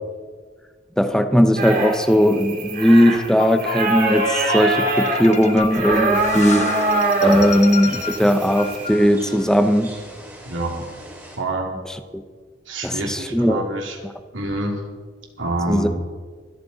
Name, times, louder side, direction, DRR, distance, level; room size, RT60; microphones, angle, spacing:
voice 1, 1.0-6.8 7.2-10.0 12.1-12.2 12.8-13.6 15.7-15.9, equal, 5° left, 8 dB, 0.8 m, -18 dB
sound 1, 1.6-8.9, right 2 dB, 50° right, 2.9 m, -24 dB
sound 2, 3.4-9.5, left 6 dB, 40° left, 0.9 m, -31 dB
sound 3, 6.1-11.4, right 1 dB, 10° right, 4.3 m, -41 dB
voice 2, 10.4-10.9 11.4-11.7 12.6-14.0 14.3-14.8 15.4-15.9, right 1 dB, 80° right, 0 dB, 2.9 m, -26 dB
25.0 x 8.7 x 4.1 m, 1.5 s
head